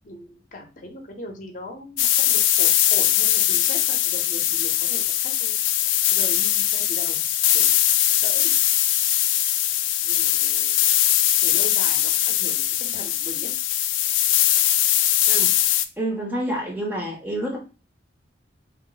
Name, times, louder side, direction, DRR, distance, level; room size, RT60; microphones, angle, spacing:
voice 1, 0.0-5.6 6.1-7.2 7.5-7.7 8.2-8.6 10.0-10.9 11.4-13.5, left 1 dB, 45° left, 3 dB, 0.7 m, -39 dB
sound 1, 2.0-15.9, left 12 dB, 85° left, 0.3 m, -21 dB
voice 2, 16.0-17.6, right 1 dB, 10° right, 0 dB, 0.5 m, -28 dB
3.1 x 2.1 x 3.8 m, 0.32 s
head